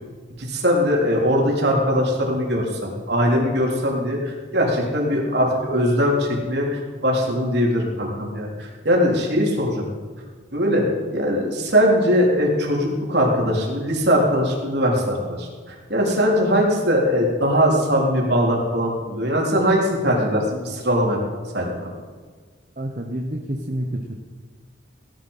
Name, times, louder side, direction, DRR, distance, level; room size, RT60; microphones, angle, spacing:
voice 1, 0.4-9.9 10.5-21.2 21.5-21.9, equal, 55° right, -2 dB, 3.9 m, -21 dB
voice 2, 22.8-24.2, right 1 dB, 40° right, 2 dB, 1.1 m, -28 dB
17.5 x 11.5 x 5.7 m, 1.5 s
head